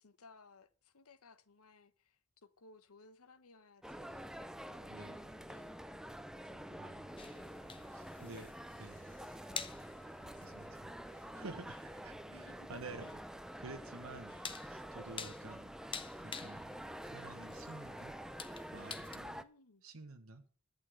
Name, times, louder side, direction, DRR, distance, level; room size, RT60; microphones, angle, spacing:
voice 1, 0.0-6.1 6.4-6.9 8.2-8.5 9.5-9.7 10.2-10.9 12.2-12.9 15.0-15.4 19.1-19.8, left 3 dB, 80° left, 1.0 m, -62 dB
sound 1, 3.8-19.4, equal, 5° right, 0.5 m, -48 dB
voice 2, 4.9-5.3 6.8-7.1 7.9-8.5 8.8-9.1 10.4-10.9 11.3-13.1 13.6-14.4 14.6-18.1 18.7-19.4 19.8-20.4, right 3 dB, 70° right, 1.1 m, -51 dB
sound 2, 6.7-12.9, left 4 dB, 55° left, 1.3 m, -68 dB
sound 3, 7.2-19.2, left 6 dB, 25° left, 0.8 m, -50 dB
11.5 x 8.5 x 6.3 m
head